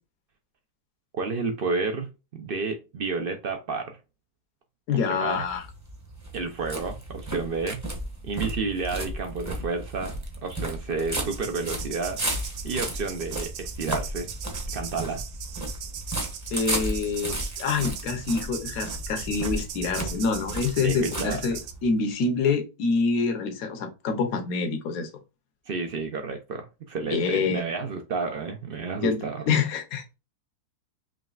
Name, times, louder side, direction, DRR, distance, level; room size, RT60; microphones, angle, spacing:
voice 1, 1.1-4.0 4.9-5.4 6.3-7.8 8.2-14.3 14.7-15.2 20.8-21.4 25.7-29.4, right 4 dB, 65° right, 0.5 m, -31 dB
voice 2, 4.9-5.6 16.5-25.1 27.1-27.7 28.9-29.2 29.5-30.2, left 5 dB, 70° left, 1.3 m, -26 dB
sound 1, 5.4-21.9, right 1 dB, 15° right, 0.7 m, -34 dB
sound 2, 11.2-21.7, right 9 dB, 90° right, 1.1 m, -39 dB
5.0 x 3.1 x 2.4 m
omnidirectional pair, 1.6 m